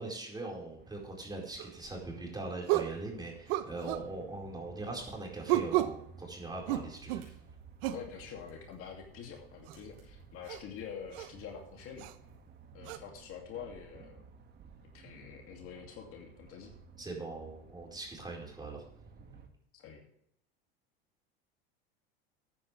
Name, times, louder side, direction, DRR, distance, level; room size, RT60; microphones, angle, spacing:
voice 1, 0.0-7.2 17.0-18.8, right 2 dB, 15° right, -1 dB, 4.6 m, -41 dB
sound 1, 0.8-19.5, right 4 dB, 35° right, 1.9 m, -56 dB
sound 2, 1.6-1.7 2.7-3.0 3.5-4.1 5.5-6.0 6.7-7.3 7.8-8.1 9.7-9.8 10.5-10.6 11.1-11.3 12.0-12.1 12.9-13.0, right 15 dB, 65° right, 0.9 m, -31 dB
sound 3, 6.5-12.4, right 4 dB, 85° right, 5.6 m, -59 dB
voice 2, 7.9-12.1 12.7-14.2 14.9-16.7 19.7-20.0, left 7 dB, 50° left, 1 dB, 2.5 m, -46 dB
14.0 x 9.5 x 3.4 m, 0.73 s
hypercardioid pair, 95°, 29 cm